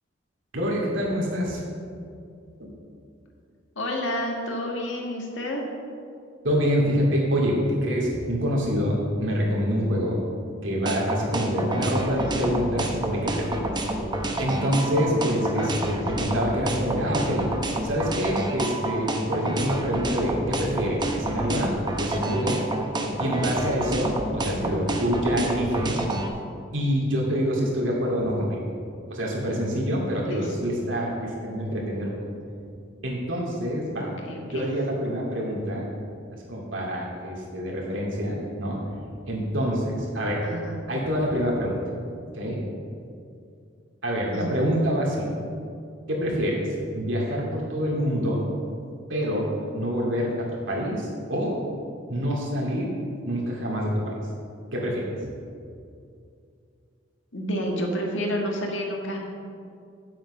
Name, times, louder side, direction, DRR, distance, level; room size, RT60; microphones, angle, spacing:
voice 1, 0.5-1.6 2.6-2.7 6.4-10.2 10.6-13.6 14.4-17.5 17.8-22.6 23.2-26.0 26.7-28.6 29.1-32.1 33.0-34.1 34.4-35.9 36.5-38.8 39.3-40.4 40.9-41.7 42.3-42.6 44.0-45.3 46.1-48.4 49.1-51.6 52.1-52.9 53.2-54.1 54.7-55.3, equal, 90° right, -3 dB, 2.4 m, -26 dB
voice 2, 3.7-5.7 12.2-12.5 15.6-16.0 24.5-24.9 30.2-30.5 34.0-34.7 40.4-40.8 44.3-44.6 57.3-59.2, equal, 85° left, 0 dB, 1.7 m, -30 dB
sound 1, 10.9-26.3, right 1 dB, 25° right, 0.8 m, -28 dB
8.0 x 7.5 x 5.4 m, 2.4 s
head